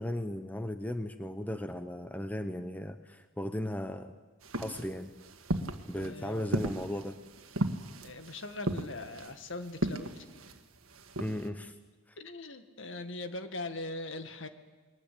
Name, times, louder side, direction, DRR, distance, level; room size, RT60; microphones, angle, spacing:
voice 1, 0.0-4.1 4.6-5.1 5.9-7.2 11.2-11.7, left 1 dB, 5° left, 9 dB, 0.8 m, -36 dB
sound 1, 4.4-11.5, right 1 dB, 75° right, 1.8 m, -36 dB
voice 2, 5.9-6.5 8.0-10.3 12.2-14.5, left 2 dB, 60° left, 9 dB, 1.9 m, -41 dB
29.5 x 22.0 x 8.6 m, 1.3 s
head